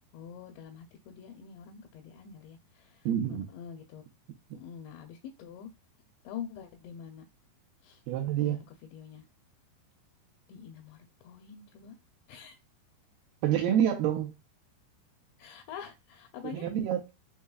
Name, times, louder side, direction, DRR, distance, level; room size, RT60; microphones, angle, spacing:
voice 1, 0.1-4.0 4.5-5.7 6.2-7.2 7.8-8.0 8.4-9.2 10.5-12.0 12.3-12.6 15.4-16.7, left 8 dB, 85° left, 2.9 m, -45 dB
voice 2, 3.1-3.5 8.1-8.6 13.4-14.3 16.4-17.2, right 10 dB, 80° right, 2.2 m, -28 dB
6.4 x 2.7 x 2.3 m
omnidirectional pair, 5.0 m